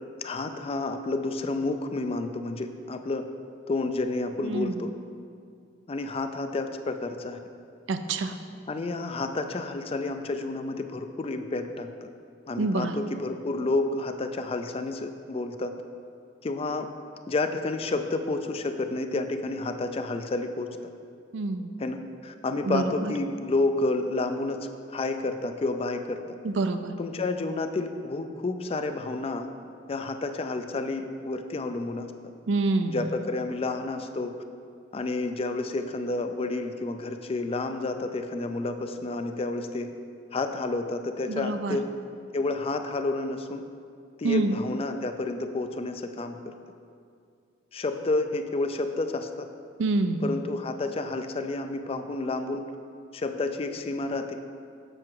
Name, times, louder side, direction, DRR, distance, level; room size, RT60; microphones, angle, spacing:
voice 1, 0.2-3.3 3.7-4.9 5.9-7.4 8.7-12.1 12.5-15.7 16.4-16.9 17.3-20.7 21.8-26.2 27.0-29.5 29.9-32.1 32.9-34.3 34.9-39.9 40.3-41.9 42.3-43.6 44.2-46.5 47.7-49.5 50.2-52.6 53.1-54.4, left 2 dB, 30° left, 7 dB, 0.4 m, -30 dB
voice 2, 4.4-4.9 7.9-8.4 12.6-13.0 21.3-21.7 22.6-23.1 26.4-26.9 32.5-33.0 41.3-41.8 44.2-44.6 49.8-50.3, right 3 dB, 75° right, 8 dB, 0.5 m, -27 dB
7.8 x 5.9 x 4.7 m, 2.3 s
head